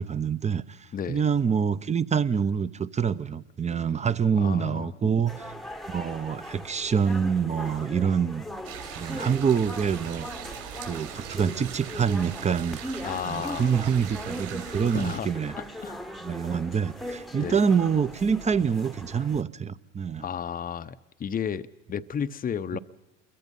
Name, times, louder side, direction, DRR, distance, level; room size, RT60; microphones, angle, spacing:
voice 1, 0.0-5.5 5.9-8.4 8.9-10.3 10.8-12.8 13.2-15.5 16.2-20.3 22.7-22.8, right 6 dB, 20° right, 0.8 m, -26 dB
voice 2, 4.3-5.1 13.0-13.8 14.9-15.3 15.6-16.0 17.4-17.6 20.2-22.8, left 8 dB, 25° left, 0.8 m, -33 dB
sound 1, 5.3-19.4, equal, ahead, 1.1 m, -39 dB
sound 2, 8.6-15.2, right 10 dB, 60° right, 5.8 m, -41 dB
28.0 x 22.5 x 5.5 m
hypercardioid pair, 85°, 37 cm